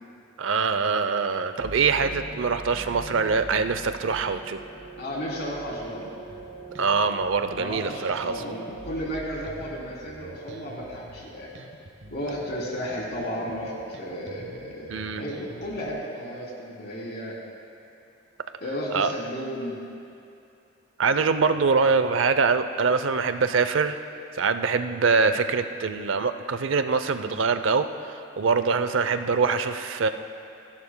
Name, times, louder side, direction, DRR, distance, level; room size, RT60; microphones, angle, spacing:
voice 1, 0.4-4.6 6.8-8.4 14.9-15.2 18.9-19.1 21.0-24.0 24.3-30.1, right 5 dB, 90° right, 10 dB, 0.6 m, -24 dB
sound 1, 1.6-10.2, right 2 dB, 20° right, 1.9 m, -42 dB
voice 2, 5.0-6.1 7.5-11.5 12.1-17.3 18.6-19.8, equal, 60° left, -4 dB, 3.3 m, -33 dB
Bass guitar, 6.3-15.9, right 1 dB, 65° right, 1.1 m, -48 dB
28.0 x 11.5 x 2.2 m, 2.7 s
head